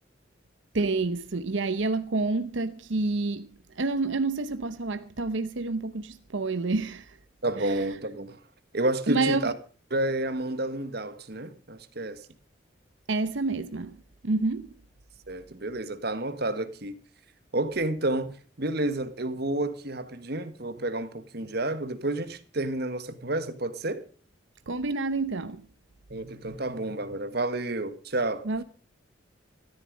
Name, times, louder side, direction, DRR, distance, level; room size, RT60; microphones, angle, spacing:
voice 1, 0.7-7.2 7.6-7.8 9.1-9.5 13.1-14.7 24.7-25.7 28.4-28.6, right 3 dB, 70° right, 0.8 m, -28 dB
voice 2, 7.4-8.4 8.7-9.5 9.9-12.2 15.3-16.9 17.5-24.0 26.1-28.5, right 2 dB, 55° right, 1.6 m, -30 dB
14.0 x 13.0 x 5.1 m
head